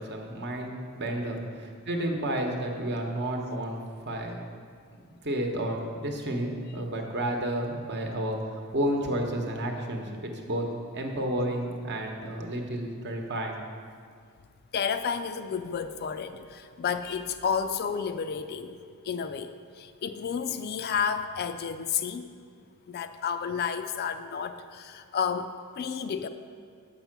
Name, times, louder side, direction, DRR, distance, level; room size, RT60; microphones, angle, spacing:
voice 1, 0.0-4.4 5.2-10.6 10.9-13.6, right 1 dB, 50° right, 2 dB, 1.0 m, -31 dB
voice 2, 14.7-18.8 19.0-22.3 22.9-26.3, left 6 dB, 45° left, 10 dB, 0.4 m, -31 dB
7.4 x 5.6 x 5.9 m, 2.1 s
head